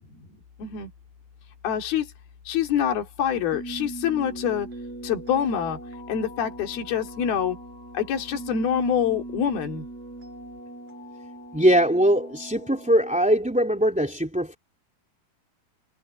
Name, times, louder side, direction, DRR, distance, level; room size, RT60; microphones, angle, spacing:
voice 1, 0.6-0.9 1.6-2.1 2.5-4.7 5.0-5.8 6.1-7.6 7.9-9.9, left 8 dB, 65° left, 5.0 m, -25 dB
sound 1, 3.5-13.2, right 2 dB, 35° right, 7.8 m, -40 dB
voice 2, 11.5-14.6, equal, ahead, 2.3 m, -21 dB
omnidirectional pair, 4.8 m